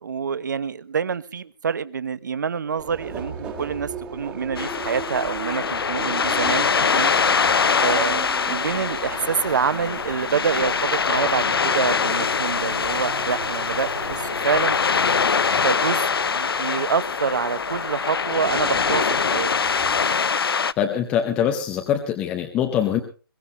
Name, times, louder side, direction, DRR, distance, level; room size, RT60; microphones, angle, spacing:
voice 1, 0.0-7.1 7.8-14.8 15.6-19.5, right 6 dB, 50° right, 16 dB, 1.0 m, -26 dB
Subway metro underground, 2.8-20.0, right 5 dB, 10° right, 1.8 m, -39 dB
sound 1, 4.6-20.7, left 6 dB, 70° left, 0.7 m, -23 dB
sound 2, 7.1-22.1, right 4 dB, 80° right, 3.2 m, -43 dB
voice 2, 20.8-23.0, left 9 dB, 10° left, 5 dB, 0.7 m, -23 dB
22.0 x 18.0 x 2.7 m, 0.35 s
hypercardioid pair, 170°, 13 cm